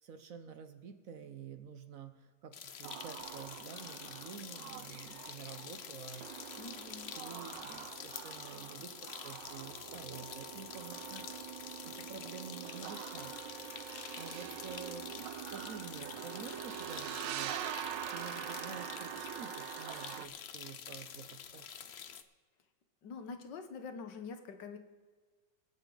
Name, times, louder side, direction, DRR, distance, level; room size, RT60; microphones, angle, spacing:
voice 1, 0.0-6.6 7.2-11.6 11.8-13.3 14.2-17.6 18.1-21.7, right 6 dB, 55° right, 9 dB, 1.1 m, -49 dB
sound 1, 2.5-22.2, left 8 dB, 55° left, 0.7 m, -47 dB
sound 2, 2.8-20.3, right 11 dB, 85° right, 1.3 m, -45 dB
voice 2, 6.6-7.1 23.0-24.8, left 5 dB, 80° left, 7 dB, 1.8 m, -45 dB
23.5 x 8.1 x 3.9 m, 1.4 s
omnidirectional pair, 1.9 m